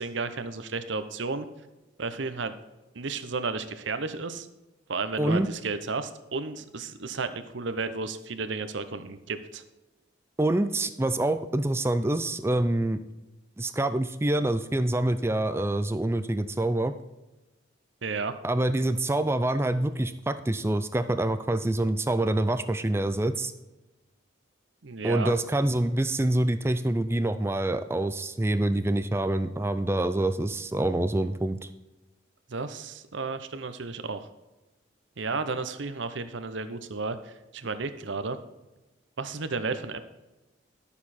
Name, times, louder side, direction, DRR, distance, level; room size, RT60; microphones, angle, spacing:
voice 1, 0.0-1.5 2.0-2.6 2.9-4.5 4.9-9.6 18.0-18.3 24.8-25.4 32.5-34.3 35.2-38.4 39.2-40.0, right 4 dB, 65° right, 11 dB, 0.8 m, -33 dB
voice 2, 5.2-5.5 10.4-13.0 13.6-16.9 18.4-23.5 25.0-31.7, right 1 dB, 10° right, 11 dB, 0.4 m, -26 dB
11.5 x 7.0 x 4.3 m, 1.1 s
head